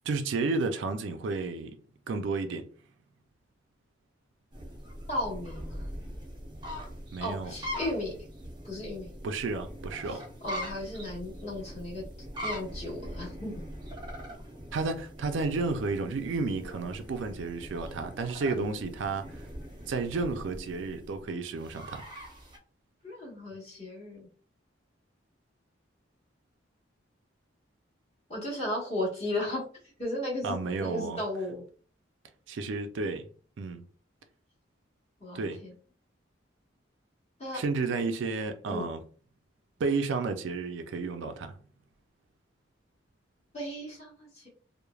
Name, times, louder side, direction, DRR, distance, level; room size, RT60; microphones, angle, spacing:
voice 1, 0.0-1.8 2.1-2.7 7.1-7.5 9.2-10.2 14.7-19.5 19.9-22.0 30.4-31.2 32.5-33.3 33.6-33.8 35.3-35.6 37.5-39.0 39.8-41.6, right 4 dB, 70° right, 0.4 m, -32 dB
sound 1, 4.5-22.6, equal, 25° right, 0.6 m, -42 dB
voice 2, 5.1-5.9 7.2-8.3 8.6-9.1 10.0-12.0 12.4-13.5 18.5-18.7 23.0-24.3 28.3-29.6 30.0-31.6 35.2-35.7 37.4-37.6 38.7-38.9 43.5-44.5, left 1 dB, 35° left, 1.3 m, -35 dB
3.1 x 2.0 x 2.3 m
head